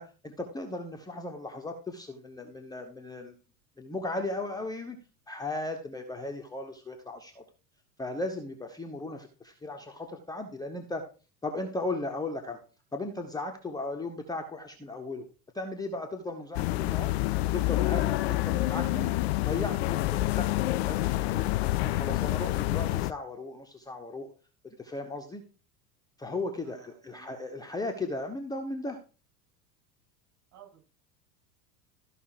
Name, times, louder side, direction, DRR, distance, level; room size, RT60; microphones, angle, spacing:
voice 1, 0.0-3.3 3.8-5.0 5.3-7.4 8.0-11.0 11.4-12.6 12.9-15.2 15.5-17.1 17.5-19.1 19.4-20.5 20.8-21.5 21.8-24.3 24.6-25.4 26.2-29.0, left 2 dB, 10° left, 4 dB, 1.1 m, -36 dB
sound 1, 16.5-23.1, left 17 dB, 45° left, 0.4 m, -28 dB
voice 2, 26.6-27.4 30.5-30.8, right 9 dB, 35° right, 0 dB, 7.2 m, -55 dB
13.5 x 5.5 x 4.9 m, 0.35 s
figure-of-eight pair, 80°, 50 cm